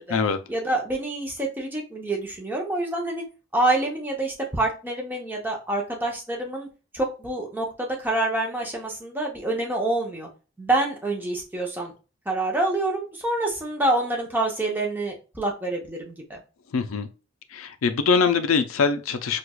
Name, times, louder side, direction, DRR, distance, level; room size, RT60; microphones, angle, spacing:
voice 1, 0.5-3.2 3.5-6.7 6.9-10.3 10.6-11.9 12.3-16.4, right 2 dB, 10° right, 0.8 m, -27 dB
voice 2, 16.7-17.1 17.5-19.4, left 5 dB, 80° left, 0.5 m, -23 dB
4.5 x 2.3 x 2.3 m
head